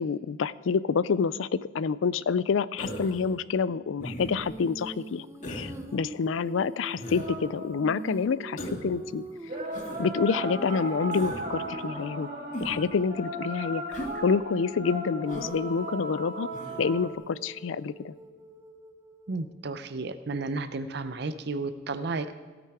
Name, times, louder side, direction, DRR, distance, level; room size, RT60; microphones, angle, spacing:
voice 1, 0.0-9.2 10.0-12.3 12.6-16.5 16.8-18.1, left 5 dB, 80° left, 18 dB, 0.4 m, -28 dB
Human voice, 2.8-3.3 4.0-4.5 5.4-5.7 7.0-7.3 8.6-8.9 9.7-10.0 11.1-11.5 12.5-12.9 13.9-14.2 15.3-15.6 16.5-16.9, equal, 40° left, 1.8 m, -38 dB
Female singing, 4.2-13.0 15.2-19.5, right 1 dB, 15° right, 0.7 m, -44 dB
sound 1, 7.1-8.5 9.4-17.1, right 1 dB, 35° right, 2.7 m, -36 dB
voice 2, 19.3-22.4, right 3 dB, 55° right, 11 dB, 0.6 m, -33 dB
16.5 x 9.1 x 4.7 m, 1.5 s
head